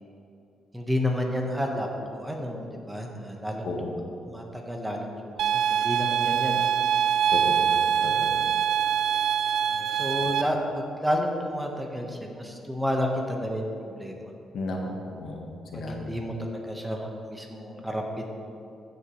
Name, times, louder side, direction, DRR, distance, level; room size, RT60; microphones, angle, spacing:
voice 1, 0.7-3.7 4.3-6.7 7.9-8.2 9.7-14.3 15.7-18.3, equal, 10° right, 1 dB, 1.2 m, -31 dB
voice 2, 3.6-4.0 7.3-7.8 8.0-8.4 14.5-16.2, left 2 dB, 70° left, 1 dB, 1.3 m, -34 dB
sound 1, 5.4-10.4, right 8 dB, 75° right, 0.3 m, -24 dB
15.0 x 6.8 x 3.2 m, 2.5 s
cardioid pair, 105°, 0 cm